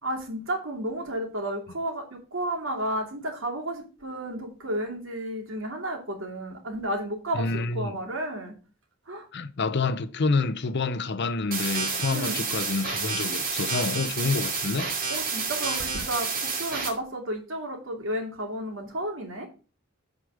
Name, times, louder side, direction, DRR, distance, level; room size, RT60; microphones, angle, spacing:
voice 1, 0.0-8.5 9.1-9.3 12.1-12.4 15.1-19.5, right 1 dB, 65° right, 2.8 m, -32 dB
voice 2, 7.3-7.9 9.3-14.9, left 3 dB, 55° left, 0.7 m, -28 dB
sound 1, 11.5-16.9, right 4 dB, 45° right, 2.5 m, -30 dB
8.3 x 4.9 x 6.4 m
head